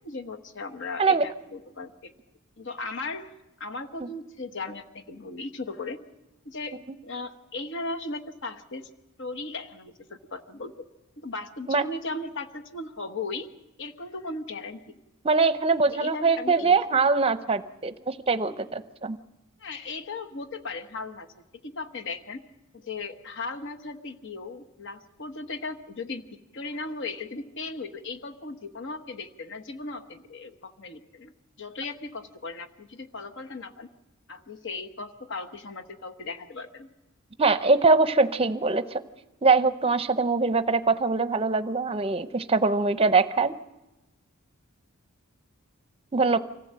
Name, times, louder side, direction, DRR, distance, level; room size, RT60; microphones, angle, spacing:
voice 1, 0.0-2.1 2.6-3.3 3.6-6.0 6.4-8.9 9.2-10.9 11.2-13.5 13.8-15.0 15.8-17.1 19.6-21.3 21.6-22.4 22.7-26.2 26.5-33.9 34.3-36.9, left 3 dB, 60° left, 6 dB, 1.1 m, -37 dB
voice 2, 15.2-19.2 37.4-39.0 39.4-43.5 46.1-46.4, right 4 dB, 25° right, 11 dB, 0.7 m, -23 dB
25.0 x 15.0 x 7.5 m, 1.0 s
head